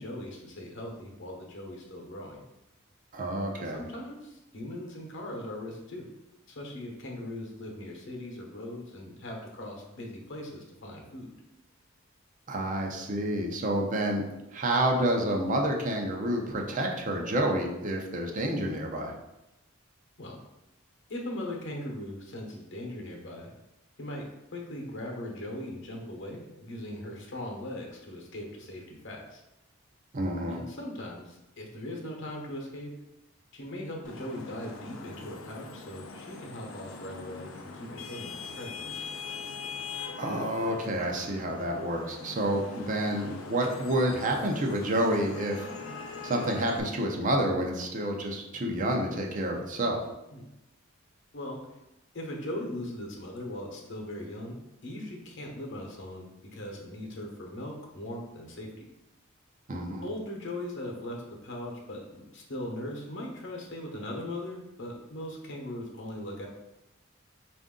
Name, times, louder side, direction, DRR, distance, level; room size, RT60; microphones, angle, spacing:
voice 1, 0.0-2.4 3.5-6.1 6.5-11.3 20.2-20.4 21.1-23.5 24.0-24.3 24.5-29.4 30.5-32.9 33.5-39.1 50.3-50.4 51.3-51.6 52.1-54.6 54.8-58.7 60.0-66.5, left 1 dB, 60° left, 0 dB, 0.9 m, -39 dB
voice 2, 3.1-3.9 12.5-14.2 14.5-19.1 30.1-30.6 40.2-45.7 46.2-50.0 59.7-60.1, right 1 dB, 40° right, 1 dB, 0.6 m, -29 dB
Vehicle horn car horn honking / Traffic noise roadway noise, 34.0-46.8, left 4 dB, 75° left, 0.5 m, -42 dB
4.5 x 2.5 x 3.7 m, 0.93 s
head